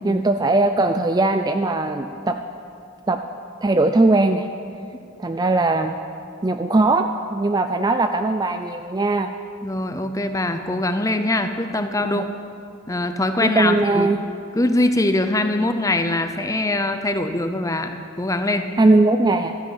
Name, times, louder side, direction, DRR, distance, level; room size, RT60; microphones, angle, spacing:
voice 1, 0.0-2.4 3.1-3.2 3.6-4.5 5.2-6.0 6.4-9.3 12.0-12.3 13.4-14.2 18.8-19.5, right 2 dB, 20° right, 7 dB, 0.3 m, -19 dB
voice 2, 9.6-12.2 12.9-14.1 14.5-18.7, left 2 dB, 15° left, 8 dB, 0.7 m, -22 dB
13.0 x 10.0 x 8.0 m, 2.5 s
head